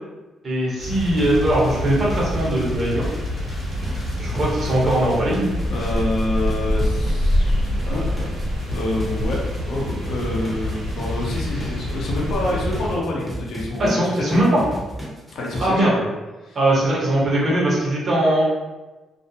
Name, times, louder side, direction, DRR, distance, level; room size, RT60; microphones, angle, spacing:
voice 1, 0.4-3.0 4.2-5.5 7.8-8.0 13.8-14.6 15.6-16.0 16.5-18.4, right 1 dB, 45° right, -5 dB, 0.9 m, -20 dB
sound 1, 0.8-5.9, right 1 dB, 25° left, 0.7 m, -33 dB
sound 2, 0.8-13.0, left 1 dB, 85° right, 1.0 m, -26 dB
sound 3, 3.7-15.7, right 1 dB, 5° right, 0.7 m, -34 dB
voice 2, 5.7-8.1 8.7-14.4 15.3-15.9 16.4-16.6, left 2 dB, 70° left, -3 dB, 0.6 m, -27 dB
2.5 x 2.1 x 2.7 m, 1.2 s
cardioid pair, 90°, 0 cm